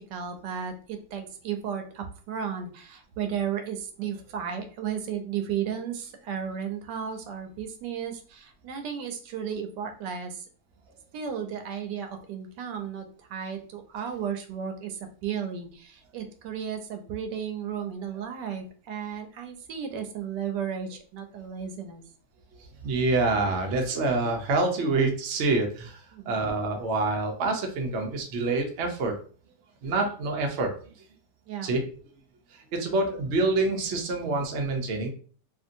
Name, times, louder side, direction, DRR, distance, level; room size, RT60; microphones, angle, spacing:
voice 1, 0.0-10.5 11.1-22.0 26.1-26.4 31.5-31.7, right 8 dB, 80° right, 5 dB, 1.2 m, -34 dB
voice 2, 22.8-29.2 29.8-30.8 31.6-31.9 32.5-35.1, right 3 dB, 60° right, 2 dB, 0.7 m, -26 dB
2.8 x 2.6 x 2.5 m, 0.42 s
omnidirectional pair, 1.8 m